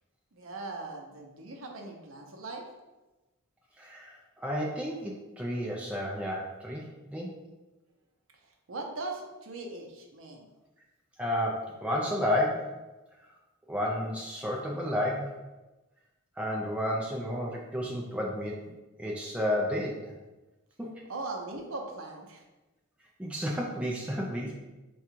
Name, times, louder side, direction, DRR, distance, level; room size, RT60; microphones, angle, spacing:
voice 1, 0.3-2.6 8.3-10.5 21.0-22.4, right 3 dB, 65° right, 1 dB, 0.6 m, -40 dB
voice 2, 3.8-7.3 11.2-12.8 13.7-15.3 16.4-18.7 19.0-20.1 20.8-21.0 23.2-24.5, equal, 5° right, -3 dB, 0.4 m, -31 dB
3.7 x 2.3 x 4.4 m, 1.1 s
head